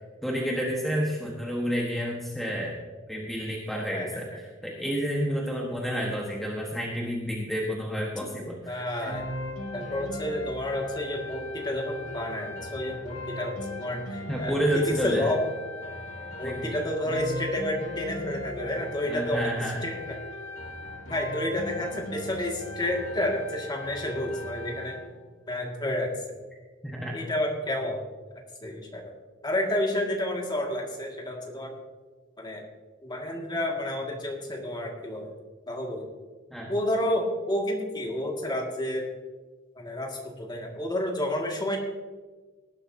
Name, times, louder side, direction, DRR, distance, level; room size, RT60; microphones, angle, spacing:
voice 1, 0.2-2.8 3.1-9.1 14.3-15.3 16.4-16.7 19.0-19.8 26.8-27.2 36.5-36.7, equal, ahead, -3 dB, 1.4 m, -30 dB
voice 2, 3.9-4.2 8.7-9.2 9.7-15.4 16.4-19.5 19.8-20.2 21.1-25.0 25.5-26.1 27.1-28.0 28.6-29.1 29.4-31.7 32.4-32.6 33.0-35.3 35.7-36.1 36.7-39.1 39.8-41.8, left 1 dB, 20° left, 0 dB, 2.1 m, -30 dB
sound 1, 9.1-25.1, left 1 dB, 75° left, 2.3 m, -38 dB
18.5 x 11.5 x 2.8 m, 1.3 s
head